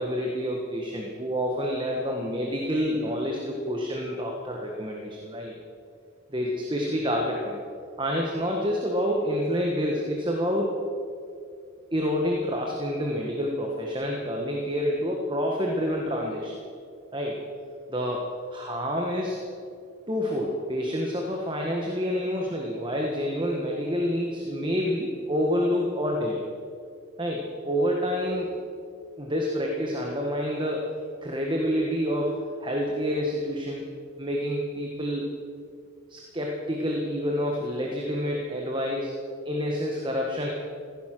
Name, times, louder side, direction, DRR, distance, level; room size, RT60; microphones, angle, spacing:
voice 1, 0.0-5.6 6.3-7.6 8.0-10.9 11.9-16.6 17.1-17.4 17.9-18.2 18.5-19.4 20.1-26.4 27.2-28.5 29.2-30.9 31.2-33.8 34.2-35.3 36.1-39.1 39.4-40.5, equal, 25° right, 0 dB, 1.4 m, -28 dB
15.5 x 15.0 x 6.1 m, 2.4 s
head